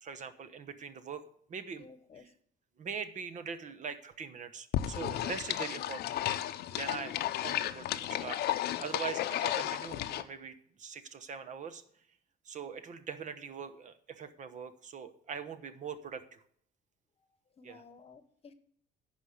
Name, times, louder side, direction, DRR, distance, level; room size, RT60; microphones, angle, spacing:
voice 1, 0.0-1.2 1.5-1.9 2.2-2.3 2.8-11.8 12.4-16.4 17.6-17.8, right 6 dB, 45° right, 10 dB, 0.9 m, -42 dB
voice 2, 1.8-2.3 17.6-18.5, left 4 dB, 35° left, 12 dB, 1.1 m, -54 dB
sound 1, 4.7-10.2, left 13 dB, 70° left, 0.7 m, -33 dB
10.5 x 5.1 x 7.9 m, 0.65 s
cardioid pair, 110°, 17 cm